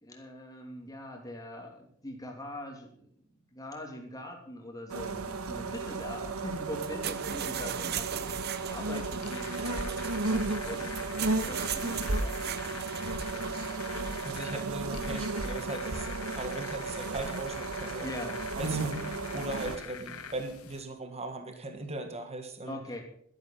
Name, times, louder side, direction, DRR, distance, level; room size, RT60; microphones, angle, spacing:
voice 1, 0.0-3.1 3.5-8.1 8.7-12.4 18.0-18.3 22.6-23.0, left 1 dB, 15° left, 2 dB, 2.9 m, -42 dB
sound 1, 4.9-19.8, right 3 dB, 90° right, 1.4 m, -34 dB
sound 2, 6.7-15.3, right 8 dB, 50° right, 0.9 m, -40 dB
sound 3, 8.3-20.8, left 6 dB, 90° left, 1.9 m, -45 dB
voice 2, 14.2-18.1 18.6-22.8, right 2 dB, 30° right, 6 dB, 1.6 m, -39 dB
12.5 x 12.0 x 5.7 m, 0.66 s
head